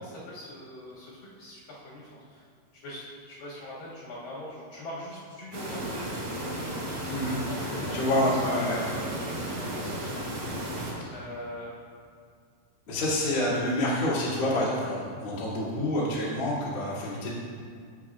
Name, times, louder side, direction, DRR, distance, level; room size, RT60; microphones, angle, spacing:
voice 1, 0.0-2.4 2.8-6.8 7.5-10.2 11.1-11.8, equal, 55° left, -9 dB, 3.3 m, -42 dB
sound 1, 5.5-10.9, right 1 dB, 50° right, 3.2 m, -34 dB
voice 2, 7.1-7.4 7.9-8.8 12.9-17.3, left 1 dB, 35° left, -9 dB, 2.9 m, -27 dB
17.0 x 7.5 x 2.4 m, 2.1 s
omnidirectional pair, 5.2 m